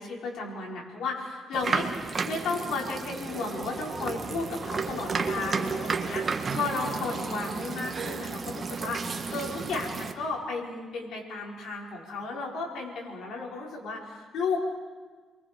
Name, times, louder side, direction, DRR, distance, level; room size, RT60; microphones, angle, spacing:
voice 1, 0.0-1.9 2.3-14.6, left 3 dB, 80° left, -3 dB, 4.9 m, -34 dB
sound 1, 1.5-10.1, right 4 dB, 35° right, 1.6 m, -32 dB
30.0 x 23.0 x 5.2 m, 1.4 s
cardioid pair, 135°, 0 cm